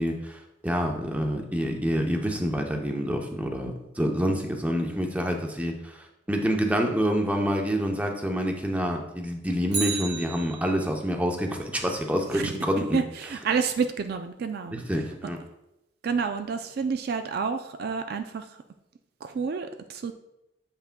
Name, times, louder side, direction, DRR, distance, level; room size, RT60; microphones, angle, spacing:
voice 1, 0.0-13.0 14.7-15.4, equal, 10° right, 2 dB, 0.6 m, -27 dB
Bicycle, 9.6-11.0 19.4-19.5, right 4 dB, 40° right, 1.1 m, -33 dB
voice 2, 12.9-14.8 16.0-18.5 19.2-20.1, right 5 dB, 55° right, 8 dB, 0.3 m, -29 dB
7.8 x 5.7 x 2.2 m, 0.88 s
head